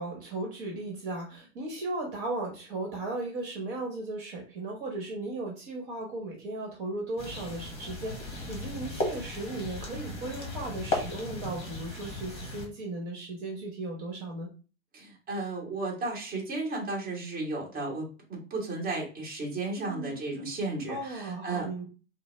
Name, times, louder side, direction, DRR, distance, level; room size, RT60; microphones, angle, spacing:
voice 1, 0.0-14.5 19.8-20.1 20.9-21.9, right 2 dB, 50° right, 0 dB, 1.3 m, -36 dB
sound 1, 7.2-12.7, left 2 dB, 15° left, 1.1 m, -36 dB
voice 2, 14.9-21.7, right 2 dB, 25° right, -2 dB, 1.6 m, -34 dB
5.2 x 2.1 x 3.3 m, 0.36 s
supercardioid pair, 155°, 34 cm